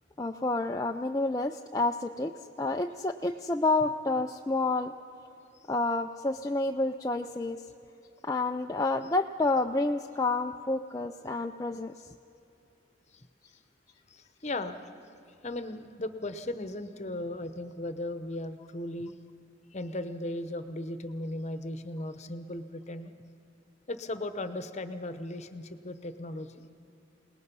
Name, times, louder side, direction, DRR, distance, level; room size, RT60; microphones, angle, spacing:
voice 1, 0.2-2.3 2.6-4.9 5.7-7.6 8.2-12.1, left 2 dB, 20° left, 4 dB, 0.4 m, -29 dB
voice 2, 14.1-14.8 15.4-19.1 19.7-23.1 23.9-26.6, left 1 dB, 35° left, 10 dB, 0.9 m, -37 dB
27.5 x 19.0 x 5.5 m, 2.8 s
head